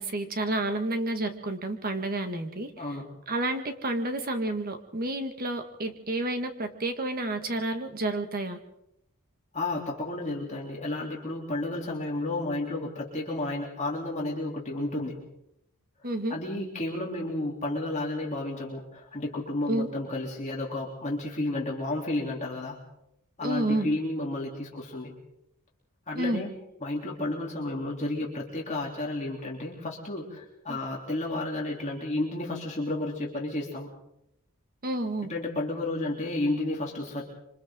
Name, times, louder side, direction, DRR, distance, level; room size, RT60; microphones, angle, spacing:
voice 1, 0.0-2.7 3.3-8.6 16.0-16.4 19.7-19.9 23.4-23.9 26.1-26.4 30.7-30.8 34.8-35.3, right 1 dB, 45° right, 7 dB, 1.9 m, -30 dB
voice 2, 2.8-3.1 9.5-15.2 16.3-22.8 23.4-25.1 26.1-26.5 26.8-33.9 35.3-37.3, left 2 dB, 35° left, -2 dB, 3.4 m, -32 dB
26.5 x 25.0 x 3.9 m, 0.81 s
head